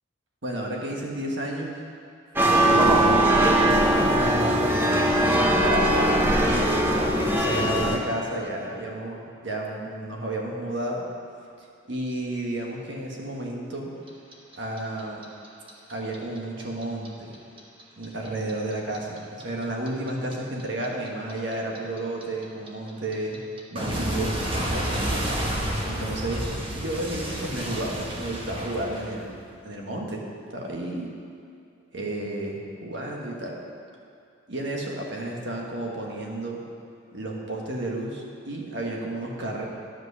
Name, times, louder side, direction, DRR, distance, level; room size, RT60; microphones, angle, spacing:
voice 1, 0.4-1.7 2.4-3.7 4.0-4.7 5.2-6.1 6.5-11.0 11.9-13.9 14.6-15.2 15.9-17.4 18.0-23.4 23.7-25.2 25.5-26.5 26.7-29.3 29.6-30.2 30.5-31.1 31.9-33.6 34.5-36.6 37.1-39.6, right 1 dB, 65° right, -1 dB, 1.5 m, -32 dB
sound 1, 2.4-8.0, right 1 dB, 10° right, 0.7 m, -20 dB
Clock, 14.1-17.1 17.3-20.3 20.6-29.5, right 1 dB, 25° right, 1.1 m, -30 dB
10.5 x 5.2 x 6.8 m, 2.4 s
head